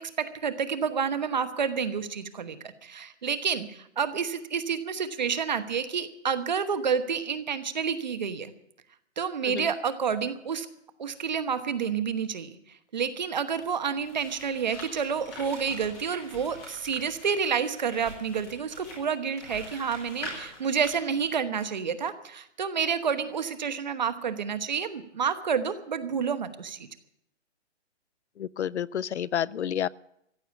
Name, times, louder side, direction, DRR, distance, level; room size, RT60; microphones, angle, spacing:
voice 1, 0.0-8.5 9.2-10.7 11.0-12.6 12.9-26.9, right 6 dB, 40° right, 10 dB, 1.1 m, -29 dB
sound 1, 13.5-21.3, left 1 dB, 5° left, 0.8 m, -44 dB
voice 2, 28.4-29.9, left 9 dB, 70° left, 22 dB, 0.6 m, -30 dB
15.0 x 8.8 x 9.8 m, 0.77 s
hypercardioid pair, 180°, 36 cm